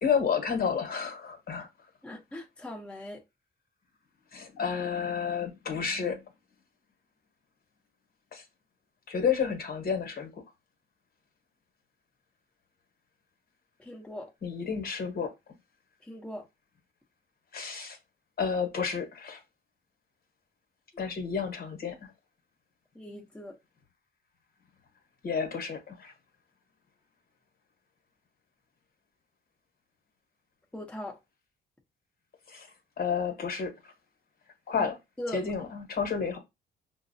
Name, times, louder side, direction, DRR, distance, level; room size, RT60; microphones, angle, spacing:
voice 1, 0.0-1.7 4.3-6.2 8.3-8.4 9.1-10.3 14.4-15.3 17.5-18.0 18.4-19.4 21.0-22.1 25.2-26.1 32.5-32.7 33.0-33.7 34.7-34.9 35.3-36.4, left 6 dB, 50° left, 1.0 m, -30 dB
voice 2, 2.0-3.2 13.8-14.3 16.0-16.5 22.9-23.6 30.7-31.2 34.8-34.9 35.2-35.5, left 1 dB, 5° left, 0.8 m, -40 dB
5.4 x 2.0 x 2.6 m
cardioid pair, 90°, 20 cm